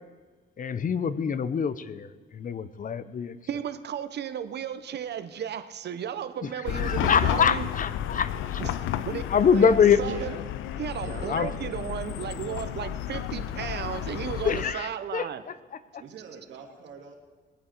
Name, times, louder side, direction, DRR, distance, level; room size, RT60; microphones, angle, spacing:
voice 1, 0.6-2.1 2.3-3.3 6.7-8.6 9.3-10.0 11.3-11.5 14.4-14.9 15.1-15.3, left 7 dB, 40° left, 14 dB, 0.8 m, -24 dB
voice 2, 3.5-7.7 8.6-8.8 9.0-9.2 9.5-10.3 10.8-15.4, right 9 dB, 60° right, 11 dB, 0.9 m, -34 dB
Chatter / Car passing by / Traffic noise roadway noise, 6.7-14.7, left 11 dB, 85° left, 0.6 m, -32 dB
voice 3, 10.0-10.4 11.0-11.9 16.0-17.2, right 7 dB, 75° right, 1 dB, 2.4 m, -43 dB
20.5 x 8.7 x 4.5 m, 1.3 s
cardioid pair, 90°, 20 cm